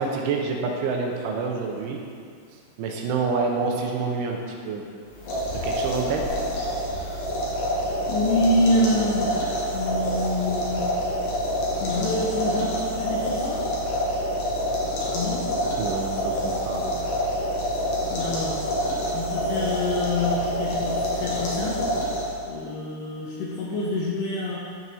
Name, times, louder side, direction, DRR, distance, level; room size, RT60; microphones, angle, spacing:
voice 1, 0.0-2.0 2.8-4.4 4.7-4.8 5.6-6.2 15.8-17.1, right 4 dB, 80° right, 1 dB, 3.0 m, -27 dB
sound 1, 5.1-22.5, equal, 60° left, 2.2 m, -27 dB
voice 2, 8.1-11.0 11.7-13.7 15.1-15.6 18.1-18.6 19.1-21.9 22.4-24.6, left 1 dB, 80° left, -5 dB, 2.5 m, -27 dB
12.5 x 4.6 x 4.1 m, 2.3 s
omnidirectional pair, 5.8 m